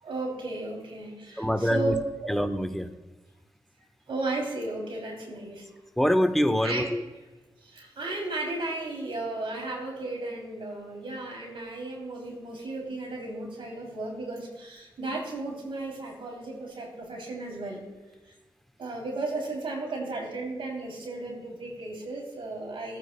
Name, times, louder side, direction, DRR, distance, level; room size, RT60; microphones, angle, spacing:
voice 1, 0.0-1.9 2.2-2.3 4.1-5.6 6.6-6.9 7.6-17.8 18.8-23.0, right 2 dB, 75° right, 0 dB, 2.9 m, -34 dB
voice 2, 1.4-1.9 2.3-2.9 6.0-7.0, equal, ahead, 8 dB, 0.8 m, -24 dB
15.0 x 9.1 x 2.2 m, 1.2 s
cardioid pair, 50°, 9 cm